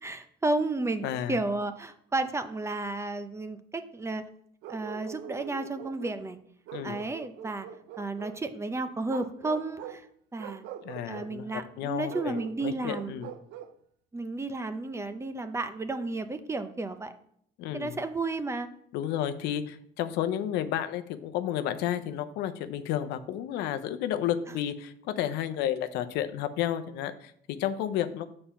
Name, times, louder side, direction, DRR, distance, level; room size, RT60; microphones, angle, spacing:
voice 1, 0.0-4.2 4.7-6.4 6.8-7.7 8.0-10.1 10.3-10.6 11.0-13.2 14.1-17.1 17.7-18.7, right 2 dB, 15° right, 10 dB, 0.6 m, -32 dB
voice 2, 1.0-1.4 6.7-7.0 10.8-13.3 17.6-18.0 18.9-28.3, left 10 dB, 90° left, 11 dB, 0.6 m, -32 dB
Bark, 4.6-6.2 6.7-8.4 9.0-10.0 10.4-11.3 12.1-13.8, right 10 dB, 80° right, 0.6 m, -43 dB
7.0 x 4.3 x 5.7 m, 0.67 s
cardioid pair, 110°, 17 cm